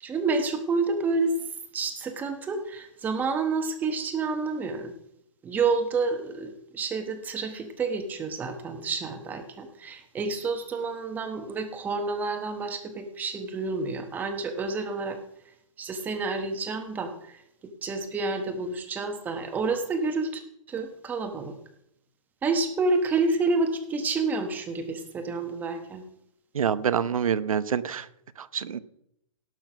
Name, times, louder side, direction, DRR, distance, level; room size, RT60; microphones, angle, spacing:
voice 1, 0.0-1.3 1.7-4.9 5.4-15.2 15.8-17.4 17.8-20.4 20.7-21.5 22.4-26.0, right 3 dB, 10° right, 7 dB, 1.1 m, -29 dB
voice 2, 26.5-28.1 28.4-28.8, right 7 dB, 90° right, 15 dB, 0.9 m, -26 dB
17.5 x 6.1 x 5.9 m, 0.76 s
hypercardioid pair, 160°, 17 cm